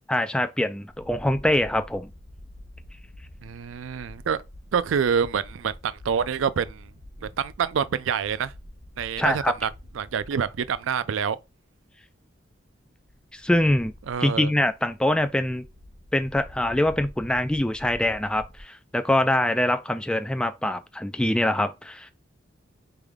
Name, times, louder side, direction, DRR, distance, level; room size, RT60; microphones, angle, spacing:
voice 1, 0.1-2.1 9.2-9.5 13.3-13.9 14.2-15.6 16.1-22.1, left 1 dB, 5° left, 0.3 m, -24 dB
sound 1, 0.9-11.5 11.8-11.9 13.0-18.6, left 1 dB, 20° left, 1.9 m, -47 dB
voice 2, 3.4-4.4 4.7-6.9 7.2-8.5 9.0-9.7 10.0-11.4 14.1-14.5, right 7 dB, 80° right, 0.4 m, -26 dB
4.4 x 3.4 x 3.5 m
head